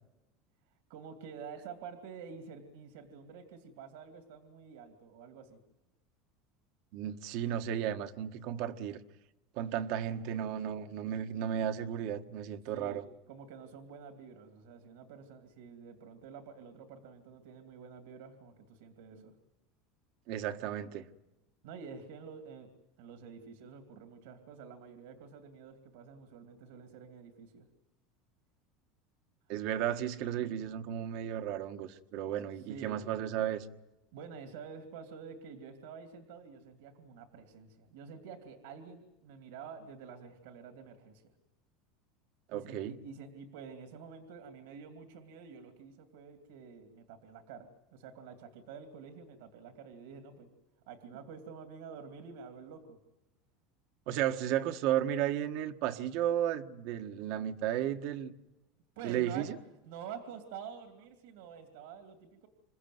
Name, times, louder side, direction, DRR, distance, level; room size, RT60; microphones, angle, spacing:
voice 1, 0.9-5.6 12.6-13.0 13.3-19.3 21.6-22.7 23.0-27.7 32.5-33.0 34.1-41.3 42.5-50.5 50.9-53.0 59.0-59.5 59.8-62.5, right 6 dB, 80° right, 2.6 m, -48 dB
voice 2, 6.9-9.0 9.6-13.0 20.3-21.0 29.5-33.7 42.5-42.9 54.1-58.3 59.0-59.6, right 10 dB, 65° right, 1.4 m, -34 dB
28.0 x 15.5 x 9.4 m
supercardioid pair, 120°, 0 cm